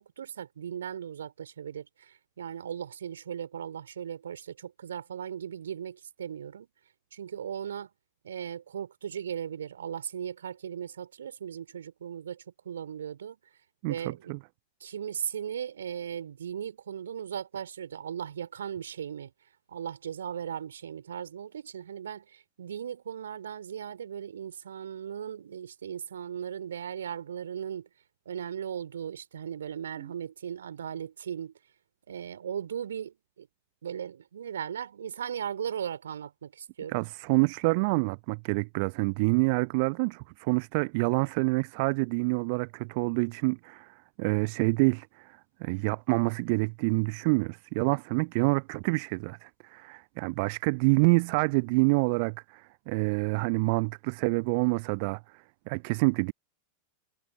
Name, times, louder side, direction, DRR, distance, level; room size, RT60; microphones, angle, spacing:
voice 1, 0.0-6.7 7.1-7.9 8.2-13.4 13.9-14.3 14.8-19.3 19.7-27.9 28.2-31.5 32.1-33.5 33.8-37.0, right 8 dB, 65° right, 4.9 m, -37 dB
voice 2, 13.8-14.4 30.0-30.1 36.9-56.3, right 30 dB, 45° right, 0.3 m, -27 dB
figure-of-eight pair, 90°, 0 cm